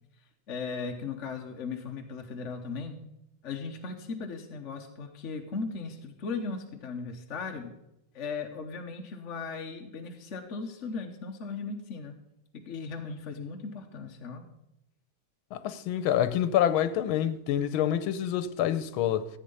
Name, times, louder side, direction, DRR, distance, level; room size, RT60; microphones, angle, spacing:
voice 1, 0.5-3.0 3.4-7.7 8.1-12.2 12.5-14.5, left 4 dB, 45° left, 1.1 m, -37 dB
voice 2, 15.5-19.3, left 10 dB, 85° left, 1.5 m, -27 dB
14.0 x 8.5 x 5.4 m
omnidirectional pair, 2.2 m